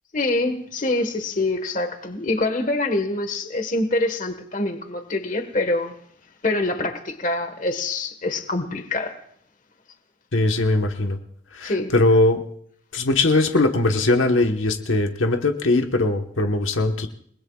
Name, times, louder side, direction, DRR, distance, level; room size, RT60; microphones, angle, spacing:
voice 1, 0.1-6.0 6.4-9.2 11.6-11.9, left 2 dB, 40° left, 1.4 m, -25 dB
voice 2, 10.3-11.2 11.5-12.4 12.9-17.1, left 2 dB, 80° left, 1.3 m, -20 dB
29.5 x 20.0 x 2.4 m
head